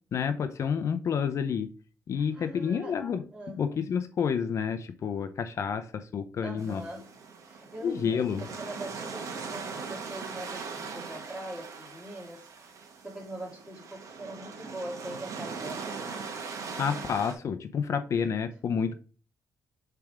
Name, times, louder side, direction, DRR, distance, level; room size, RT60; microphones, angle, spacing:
voice 1, 0.1-1.7 2.1-3.2 3.6-6.8 7.8-8.4 16.8-18.9, left 7 dB, 50° left, 0.6 m, -29 dB
voice 2, 2.1-3.0 3.3-3.6 6.4-7.1 7.4-16.0 18.3-18.4, right 1 dB, 15° right, 2.6 m, -42 dB
sound 1, 6.6-17.3, right 5 dB, 60° right, 1.5 m, -40 dB
7.0 x 3.4 x 4.8 m
cardioid pair, 125°, 6 cm